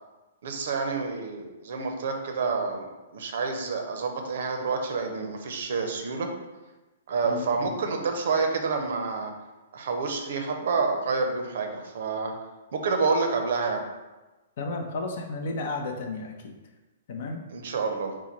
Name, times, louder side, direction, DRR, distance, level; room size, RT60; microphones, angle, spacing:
voice 1, 0.4-2.9 3.1-6.3 7.1-9.3 9.7-12.4 12.7-13.8 17.5-18.1, right 4 dB, 55° right, 4 dB, 0.6 m, -28 dB
voice 2, 7.2-7.8 14.6-16.5 17.1-17.4, left 3 dB, 50° left, 4 dB, 0.6 m, -33 dB
4.5 x 2.1 x 4.1 m, 1.1 s
figure-of-eight pair, 115°, 0 cm